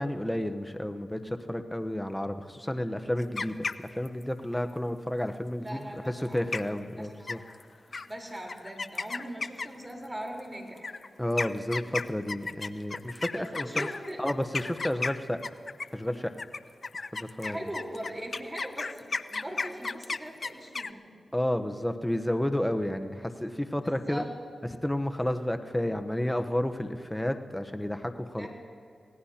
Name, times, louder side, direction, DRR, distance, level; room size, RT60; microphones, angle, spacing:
voice 1, 0.0-3.6 3.9-7.4 11.2-13.9 14.2-15.4 15.9-16.3 17.1-17.6 21.3-24.3 24.8-28.5, left 1 dB, 10° left, 7 dB, 1.0 m, -31 dB
sound 1, 3.2-4.2 6.1-6.3 6.5-6.9 7.3-7.6 7.9-8.1 8.5-9.9 10.8-16.0 16.4-20.9, left 4 dB, 55° left, 0.5 m, -34 dB
voice 2, 5.6-6.5 6.9-7.4 7.9-10.9 13.3-14.2 17.4-21.1 23.8-24.3 28.4-28.5, equal, 20° right, 0 dB, 4.2 m, -40 dB
25.5 x 18.0 x 2.9 m, 2.5 s
cardioid pair, 45°, 0 cm